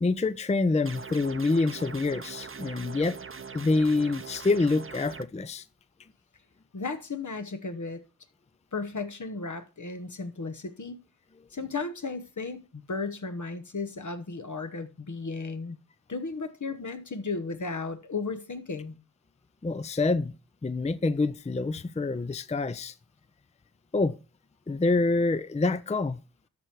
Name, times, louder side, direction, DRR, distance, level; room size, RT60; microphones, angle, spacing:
voice 1, 0.0-3.2 3.5-5.6 19.6-20.3 20.6-22.9 23.9-24.1 24.7-26.2, left 3 dB, 20° left, 0.4 m, -26 dB
sound 1, 0.9-5.2, right 5 dB, 40° right, 0.6 m, -42 dB
voice 2, 6.7-8.0 8.7-11.0 11.5-15.8 16.1-19.0, left 4 dB, 65° left, 1.0 m, -35 dB
13.0 x 4.5 x 4.7 m
wide cardioid pair, 40°, 33 cm